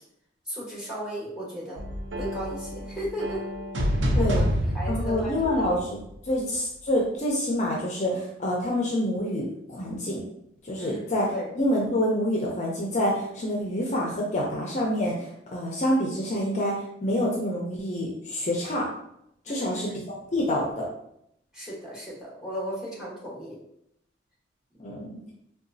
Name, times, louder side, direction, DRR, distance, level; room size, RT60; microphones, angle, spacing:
voice 1, 0.5-1.8 2.2-3.4 3.8-4.5 4.7-5.7 6.4-6.5 10.8-11.5 19.5-20.0 21.5-23.6, equal, 5° right, -6 dB, 1.2 m, -36 dB
sound 1, 1.8-6.3, equal, 85° right, 0.6 m, -28 dB
voice 2, 4.9-6.0 6.2-10.2 10.6-18.9 19.5-20.9 24.8-25.2, left 1 dB, 40° left, -2 dB, 0.5 m, -27 dB
3.9 x 2.3 x 2.6 m, 0.75 s
head